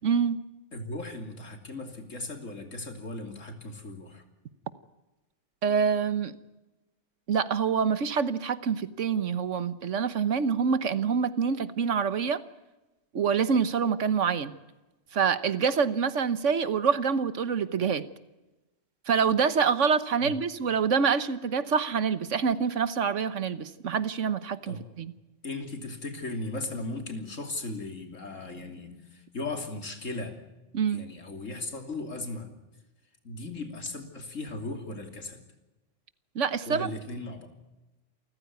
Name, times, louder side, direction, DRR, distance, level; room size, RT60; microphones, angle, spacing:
voice 1, 0.0-0.4 5.6-6.4 7.3-12.4 13.1-14.5 15.1-18.0 19.1-25.1 30.7-31.0 36.3-36.9, right 6 dB, 75° right, 13 dB, 1.4 m, -26 dB
voice 2, 0.7-4.2 20.2-20.3 24.7-24.8 25.4-30.4 30.9-32.5 33.2-35.4 36.7-37.5, left 2 dB, 85° left, 5 dB, 3.4 m, -37 dB
28.5 x 14.5 x 9.4 m, 1.1 s
omnidirectional pair, 1.3 m